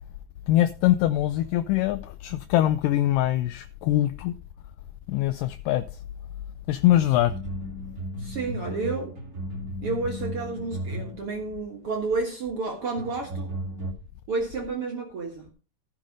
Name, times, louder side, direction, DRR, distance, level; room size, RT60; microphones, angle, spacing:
voice 1, 0.5-4.3 5.1-5.8 6.7-7.3, left 14 dB, 80° left, 2.2 m, -23 dB
sound 1, 7.1-12.0 12.9-13.9, right 1 dB, 30° right, 2.0 m, -35 dB
voice 2, 8.2-9.2 9.8-13.5 14.3-15.5, right 3 dB, 55° right, 1.8 m, -30 dB
14.0 x 5.7 x 5.1 m
omnidirectional pair, 4.0 m